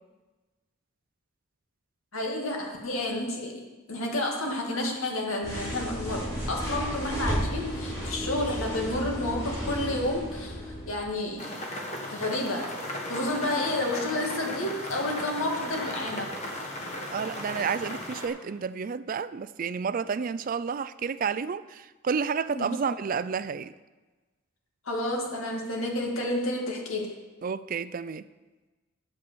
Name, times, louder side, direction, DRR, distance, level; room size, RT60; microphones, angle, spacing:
voice 1, 2.1-10.6 10.9-11.5 12.1-16.3 22.5-22.9 24.9-27.1, left 1 dB, 80° left, 2.2 m, -30 dB
sound 1, 5.4-11.2, equal, 15° left, 4.3 m, -33 dB
sound 2, 11.4-18.3, left 1 dB, 30° left, 1.5 m, -36 dB
voice 2, 17.1-23.7 27.4-28.2, right 6 dB, 40° right, 0.3 m, -30 dB
8.5 x 7.6 x 6.9 m
head